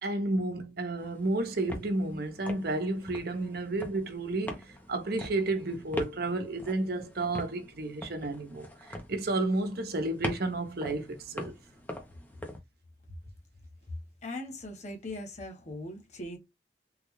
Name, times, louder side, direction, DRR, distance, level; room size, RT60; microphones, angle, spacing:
voice 1, 0.0-11.5, right 2 dB, 60° right, 0.9 m, -32 dB
sound 1, 1.0-12.6, left 1 dB, 10° left, 0.8 m, -43 dB
voice 2, 14.2-16.4, left 1 dB, 40° left, 1.1 m, -40 dB
3.8 x 2.4 x 3.1 m
head